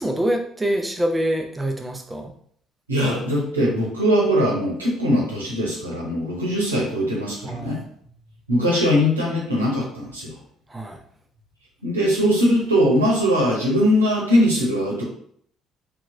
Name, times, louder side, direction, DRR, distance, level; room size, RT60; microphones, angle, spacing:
voice 1, 0.0-2.3 7.4-7.8 10.7-11.0, right 1 dB, 15° right, 3 dB, 0.7 m, -25 dB
voice 2, 2.9-7.8 8.5-10.3 11.8-15.0, equal, 90° right, -3 dB, 0.9 m, -21 dB
3.4 x 2.9 x 2.6 m, 0.62 s
figure-of-eight pair, 50°, 0 cm